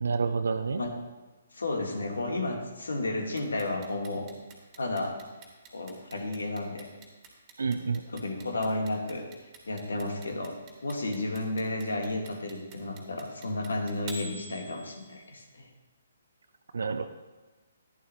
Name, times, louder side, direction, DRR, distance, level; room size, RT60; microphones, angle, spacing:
voice 1, 0.0-0.8 7.6-8.0 16.7-17.1, right 5 dB, 70° right, 8 dB, 0.5 m, -28 dB
voice 2, 1.5-4.3 4.8-5.1 5.7-6.9 8.1-9.2 9.7-10.5 10.8-15.7, left 2 dB, 80° left, 3 dB, 1.6 m, -32 dB
Clock, 3.4-15.3, right 3 dB, 25° right, 1.9 m, -47 dB
11.0 x 10.5 x 2.9 m, 1.2 s
figure-of-eight pair, 140°, 0 cm